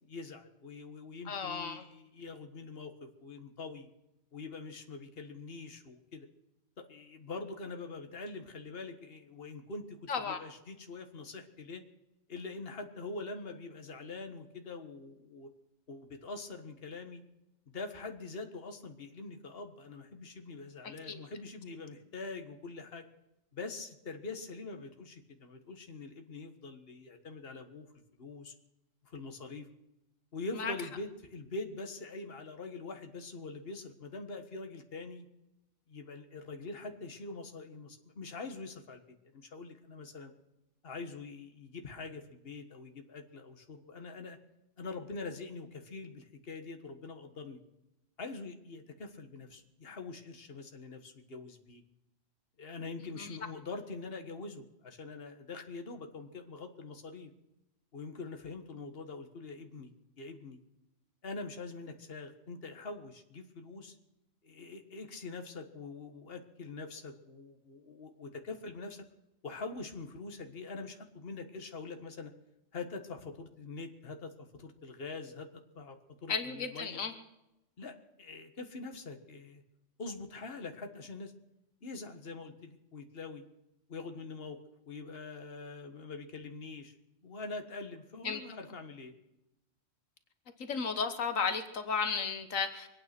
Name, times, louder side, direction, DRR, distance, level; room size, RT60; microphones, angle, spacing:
voice 1, 0.0-3.9 4.3-6.3 6.8-11.8 12.3-15.5 15.9-17.2 17.7-23.0 23.5-27.9 28.2-28.5 29.0-29.7 30.3-35.3 35.9-40.3 40.8-44.4 44.8-47.6 48.2-51.8 52.6-57.3 57.9-59.9 60.2-60.6 61.2-64.0 64.4-69.0 69.4-72.3 72.7-77.0 77.8-79.6 80.0-81.3 81.8-83.4 83.9-84.6 84.9-86.9 87.2-89.1, left 3 dB, 50° left, 5 dB, 1.8 m, -44 dB
voice 2, 1.3-1.8 10.1-10.4 21.1-21.2 30.6-30.7 53.2-53.3 76.3-77.1 88.2-88.4 90.6-92.9, left 5 dB, 90° left, 8 dB, 1.7 m, -34 dB
24.5 x 9.3 x 6.0 m, 0.91 s
omnidirectional pair, 1.3 m